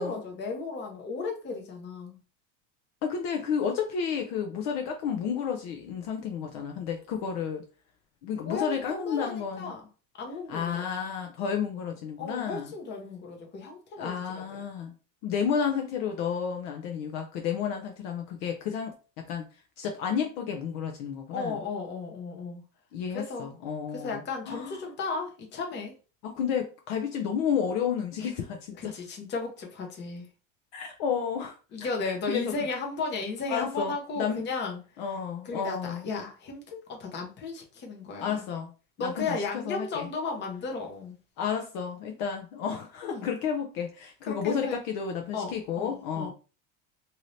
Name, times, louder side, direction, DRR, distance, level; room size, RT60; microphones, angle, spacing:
voice 1, 0.0-2.2 8.5-9.9 10.2-10.8 12.2-14.6 21.3-22.6 23.1-23.5 23.9-25.9 28.8-30.3 31.7-34.8 35.4-38.4 39.0-41.1 43.0-43.3 44.3-44.8 45.3-46.3, left 4 dB, 25° left, 2 dB, 0.8 m, -35 dB
voice 2, 3.0-7.6 8.2-9.7 10.5-12.7 14.0-14.9 15.2-19.4 19.8-21.6 22.9-24.8 26.2-28.9 30.7-31.6 32.0-32.5 33.5-34.4 35.0-36.1 38.2-38.7 39.0-40.1 41.4-46.3, left 7 dB, 55° left, 3 dB, 0.6 m, -31 dB
2.7 x 2.7 x 3.1 m, 0.35 s
supercardioid pair, 150°, 39 cm